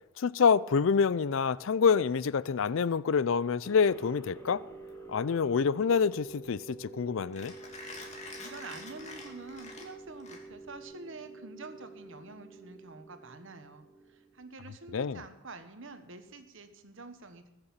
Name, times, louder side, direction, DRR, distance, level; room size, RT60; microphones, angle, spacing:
voice 1, 0.2-4.6 5.1-7.5 14.9-15.2, left 6 dB, 65° left, 0.4 m, -27 dB
sound 1, 3.6-14.5, right 3 dB, 15° left, 2.3 m, -49 dB
Mechanisms, 4.7-10.8, left 3 dB, 30° left, 2.6 m, -48 dB
voice 2, 8.4-17.5, right 3 dB, 60° right, 1.3 m, -47 dB
20.0 x 6.8 x 7.3 m
head